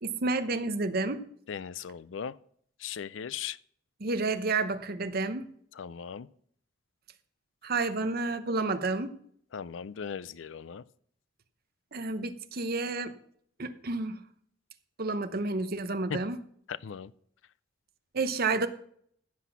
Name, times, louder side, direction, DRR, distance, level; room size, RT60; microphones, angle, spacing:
voice 1, 0.0-1.2 4.0-5.5 7.6-9.1 11.9-13.1 13.6-14.2 15.0-16.4 18.1-18.7, right 3 dB, 55° right, 9 dB, 0.9 m, -30 dB
voice 2, 1.5-2.4 2.8-3.6 5.8-6.3 9.5-10.8 16.1-16.2 16.7-17.1, left 7 dB, 80° left, 18 dB, 0.5 m, -38 dB
15.5 x 6.1 x 6.0 m, 0.63 s
head